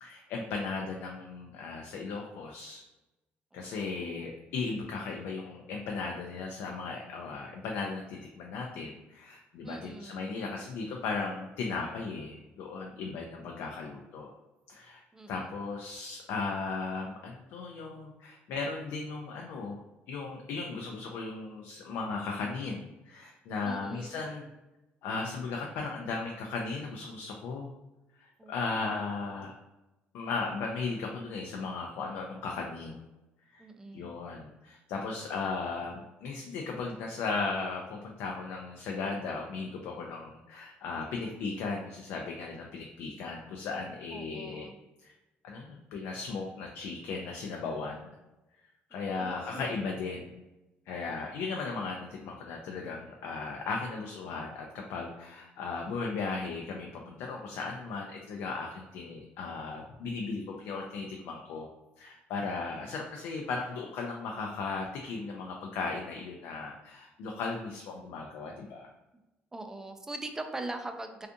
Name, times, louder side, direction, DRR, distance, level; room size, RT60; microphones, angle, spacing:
voice 1, 0.0-2.8 3.5-14.3 14.7-15.0 15.3-19.8 20.1-24.5 25.0-27.7 28.2-29.5 30.1-33.0 33.5-33.6 33.9-44.7 45.0-45.1 45.4-48.1 48.9-50.3 50.9-61.7 62.0-68.9, left 4 dB, 75° left, 1 dB, 0.3 m, -36 dB
voice 2, 3.5-4.3 9.6-10.3 15.1-15.5 23.6-24.2 28.4-29.0 33.6-34.1 44.1-44.8 48.9-49.8 69.5-71.3, right 2 dB, 10° right, 6 dB, 0.3 m, -42 dB
2.5 x 2.3 x 2.5 m, 1.0 s
cardioid pair, 105°, 4 cm